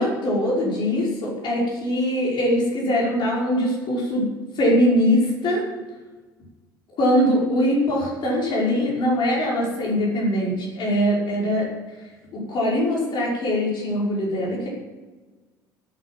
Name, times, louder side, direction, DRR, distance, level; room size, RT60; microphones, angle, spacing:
voice 1, 0.0-4.3 4.6-5.6 7.0-11.7 12.3-14.7, equal, 45° left, -3 dB, 5.4 m, -22 dB
13.0 x 8.8 x 7.8 m, 1.3 s
figure-of-eight pair, 60°, 11 cm